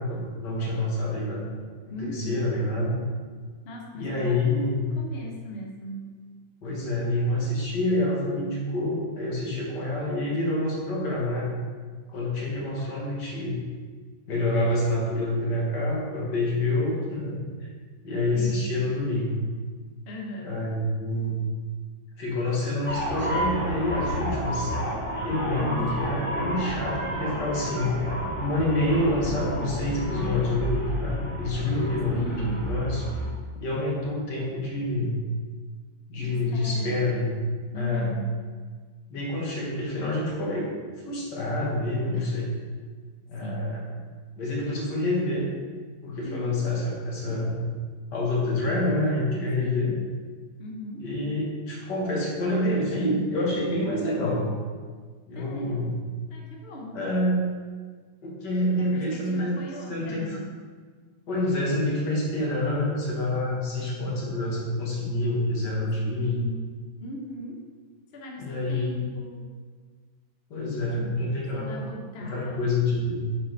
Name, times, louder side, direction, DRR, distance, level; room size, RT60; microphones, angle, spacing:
voice 1, 0.0-1.5 2.0-2.9 3.9-4.9 6.6-11.5 12.1-13.6 14.3-17.7 18.0-19.4 20.4-21.4 22.2-24.7 25.2-28.0 28.4-33.0 33.5-35.2 36.1-37.3 37.7-38.1 39.1-40.7 41.0-42.5 43.3-43.9 44.4-45.5 46.0-47.6 48.1-49.9 51.0-54.4 55.3-56.0 56.9-57.4 58.2-59.6 59.9-60.4 61.3-66.4 68.4-68.9 70.5-71.7 72.2-73.2, left 1 dB, 75° left, -4 dB, 2.1 m, -27 dB
voice 2, 1.9-2.4 3.6-6.2 18.3-18.9 20.1-20.6 25.6-25.9 32.1-32.8 36.2-37.2 37.7-38.4 42.1-42.3 43.4-43.8 46.2-46.7 49.6-50.0 50.6-51.1 55.3-55.9 56.3-57.0 58.8-60.5 66.2-66.6 67.0-67.7 68.1-69.4 70.8-71.2 71.5-72.7, equal, 45° left, -1 dB, 0.9 m, -39 dB
sound 1, 22.9-33.3, equal, 5° left, 1.1 m, -31 dB
7.5 x 4.4 x 3.9 m, 1.6 s
omnidirectional pair, 1.9 m